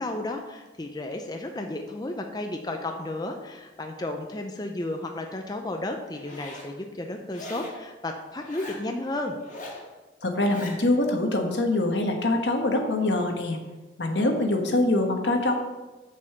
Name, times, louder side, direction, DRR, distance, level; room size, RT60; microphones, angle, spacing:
voice 1, 0.0-9.4, left 2 dB, 20° left, 3 dB, 0.5 m, -33 dB
Zipper (clothing), 6.1-6.7 7.3-7.8 8.4-8.8 9.4-9.8 10.3-10.8, left 1 dB, 45° left, 1.9 m, -41 dB
voice 2, 10.2-13.6 14.0-15.5, left 2 dB, 75° left, 3 dB, 1.3 m, -24 dB
6.8 x 5.4 x 6.7 m, 1.1 s
head